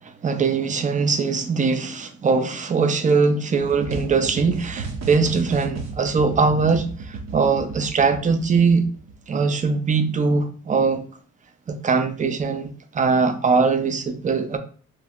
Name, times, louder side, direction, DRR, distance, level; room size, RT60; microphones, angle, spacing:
voice 1, 0.2-8.9 9.3-11.0 11.7-14.6, right 4 dB, 25° right, 0.4 m, -21 dB
sound 1, 3.6-9.2, right 4 dB, 60° right, 0.7 m, -34 dB
3.0 x 2.8 x 2.3 m
cardioid pair, 90°, 30 cm